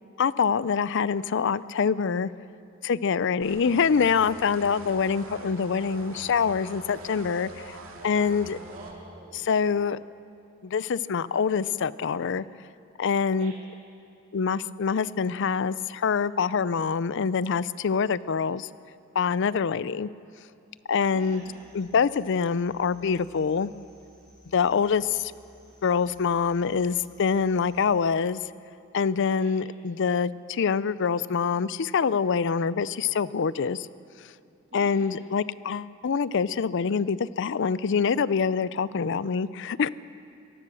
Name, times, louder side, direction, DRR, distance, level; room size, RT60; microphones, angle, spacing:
voice 1, 0.2-2.3 2.8-7.8 8.0-8.6 9.3-10.0 10.6-12.4 13.0-13.5 14.3-18.7 19.2-20.1 20.9-21.4 21.7-23.7 24.5-25.3 25.8-28.4 28.9-33.9 34.7-39.9, left 6 dB, 60° left, 18 dB, 0.5 m, -25 dB
sound 1, 3.4-8.9, right 2 dB, 85° right, 2.4 m, -43 dB
voice 2, 8.6-9.4 13.4-13.5 21.1-21.6 29.4-29.5 34.7-35.1, right 2 dB, 35° right, -3 dB, 2.2 m, -46 dB
sound 2, 21.1-27.9, equal, 5° left, 5.4 m, -57 dB
23.5 x 18.5 x 6.3 m, 2.5 s
head